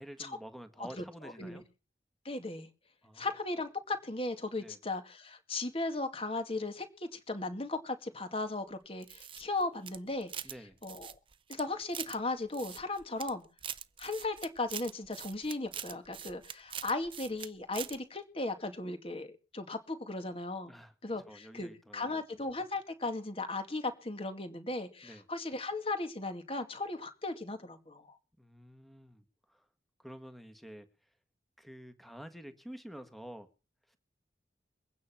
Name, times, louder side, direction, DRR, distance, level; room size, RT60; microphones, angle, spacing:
voice 1, 0.0-1.6 3.0-3.3 4.6-4.8 10.4-10.8 20.7-20.9 21.2-22.2 25.0-25.2 28.4-29.6 30.0-30.9 31.6-33.5 33.9-34.0, equal, ahead, 9 dB, 1.5 m, -49 dB
voice 2, 0.8-1.6 2.2-2.7 3.2-10.5 10.8-11.1 11.5-13.4 14.0-20.7 21.0-28.2, left 2 dB, 30° left, 7 dB, 2.1 m, -37 dB
sound 1, 9.0-10.6 10.8-12.2 12.5-13.3 13.6-17.5 17.7-18.0, right 9 dB, 30° right, 0.7 m, -43 dB
23.0 x 9.5 x 5.9 m, 0.34 s
head